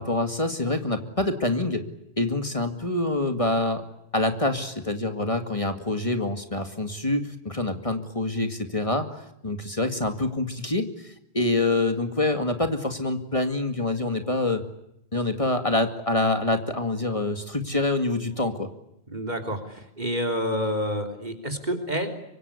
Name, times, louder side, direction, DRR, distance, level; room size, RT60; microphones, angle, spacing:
voice 1, 0.0-1.8 2.2-3.8 4.1-14.6 15.1-18.7, left 2 dB, 30° left, 7 dB, 2.3 m, -26 dB
voice 2, 19.1-22.1, equal, 45° right, 5 dB, 3.5 m, -28 dB
25.0 x 24.5 x 8.4 m, 0.82 s
omnidirectional pair, 1.1 m